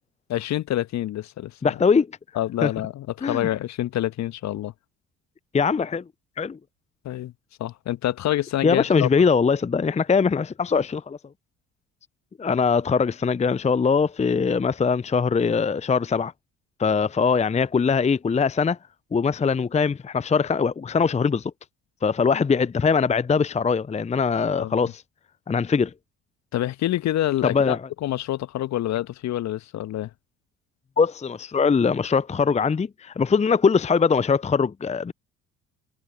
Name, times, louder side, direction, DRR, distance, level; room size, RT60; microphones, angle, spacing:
voice 1, 0.3-1.8 2.3-4.7 7.0-7.3 7.6-9.1 24.5-24.9 26.5-30.1, left 13 dB, 45° left, 1.6 m, -27 dB
voice 2, 1.6-2.1 2.6-2.7 3.2-3.5 5.5-6.0 6.4-6.6 8.6-11.2 12.4-16.3 16.8-18.8 19.1-21.5 22.0-25.0 25.5-25.9 27.4-27.8 31.0-35.1, left 5 dB, 20° left, 0.9 m, -22 dB
figure-of-eight pair, 50°, 38 cm